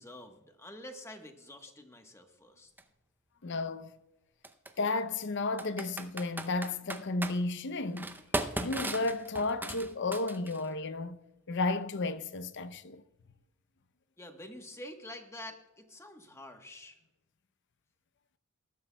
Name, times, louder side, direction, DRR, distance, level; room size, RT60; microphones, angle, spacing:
voice 1, 0.0-2.7 14.2-17.0, left 1 dB, 15° left, 1.2 m, -47 dB
Computer keyboard, 2.8-2.9 4.4-4.7 5.6-7.4 8.0-10.7, right 2 dB, 10° right, 0.6 m, -36 dB
voice 2, 3.4-3.9 4.8-8.2 8.6-11.2 11.5-13.0, left 3 dB, 55° left, 0.6 m, -33 dB
19.5 x 12.0 x 2.3 m
head